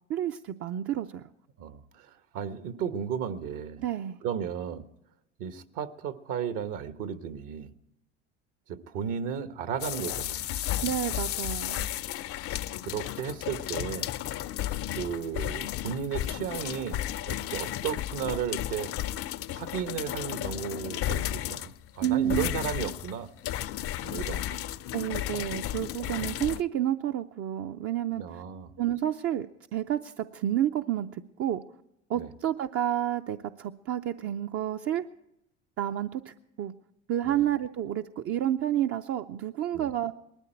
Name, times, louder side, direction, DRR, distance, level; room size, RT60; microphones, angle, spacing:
voice 1, 0.1-1.3 3.8-4.2 10.8-11.9 22.0-22.5 24.9-28.4 28.8-29.5 29.7-31.6 32.1-35.0 35.8-36.7 37.1-40.1, right 11 dB, 40° right, 7 dB, 0.6 m, -30 dB
voice 2, 1.6-3.8 4.2-4.8 5.4-7.7 8.7-10.5 12.8-14.1 15.0-18.9 19.5-23.3 24.0-24.6 28.1-28.7 32.1-32.3 37.2-37.4 39.7-39.9, right 8 dB, 60° right, 10 dB, 1.3 m, -34 dB
sound 1, 9.8-26.6, left 13 dB, 40° left, 0.5 m, -33 dB
19.5 x 13.5 x 4.5 m, 0.84 s
hypercardioid pair, 80°, 35 cm